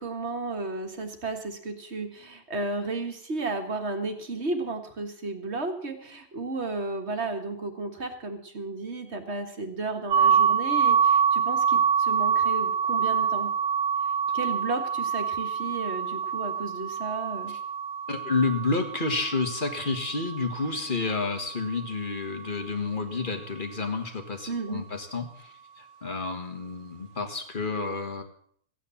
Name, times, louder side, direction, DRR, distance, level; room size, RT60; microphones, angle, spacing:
voice 1, 0.0-13.5 14.3-17.5 24.5-24.8, right 3 dB, 45° right, 5 dB, 2.0 m, -33 dB
sound 1, 10.1-21.8, right 7 dB, 60° right, 1.2 m, -26 dB
voice 2, 18.1-28.2, left 3 dB, 35° left, 5 dB, 1.8 m, -30 dB
15.5 x 9.3 x 7.1 m, 0.62 s
omnidirectional pair, 1.6 m